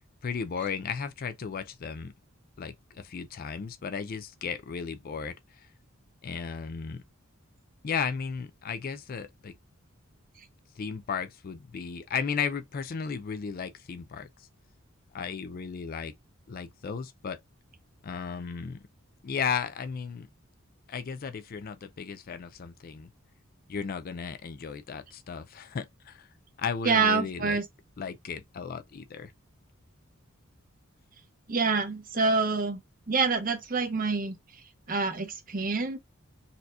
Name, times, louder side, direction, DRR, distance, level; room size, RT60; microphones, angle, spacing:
voice 1, 0.2-2.1 2.6-5.3 6.2-7.0 7.8-9.5 10.8-14.3 15.1-16.1 16.5-17.4 18.0-18.8 19.2-20.3 20.9-23.1 23.7-26.3 26.6-27.6 28.0-29.3, left 6 dB, 45° left, 0.4 m, -35 dB
voice 2, 26.8-27.6 31.5-32.8 33.1-34.3 34.9-36.0, right 4 dB, 40° right, 0.8 m, -26 dB
4.1 x 2.8 x 2.4 m
head